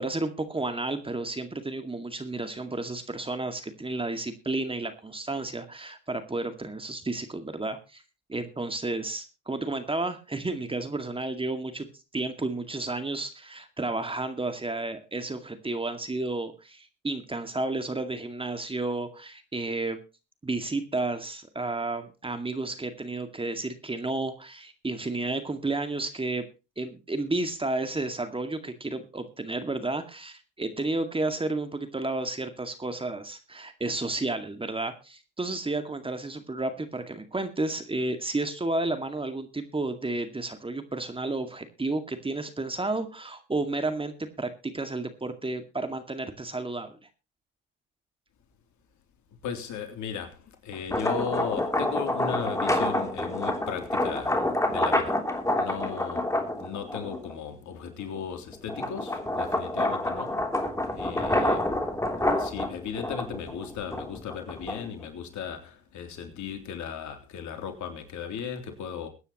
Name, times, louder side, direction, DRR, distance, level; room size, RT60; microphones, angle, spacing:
voice 1, 0.0-8.0 8.3-11.9 12.1-20.0 20.4-26.4 26.8-47.0, right 2 dB, 15° right, 2.1 m, -32 dB
voice 2, 49.4-50.4 50.6-55.2 55.6-56.3 56.6-60.4 60.9-61.7 62.4-69.1, left 7 dB, 55° left, 3.4 m, -36 dB
sound 1, 50.7-57.3 57.9-65.0, left 1 dB, 10° left, 3.2 m, -28 dB
22.5 x 9.7 x 3.0 m
hypercardioid pair, 75°, 35 cm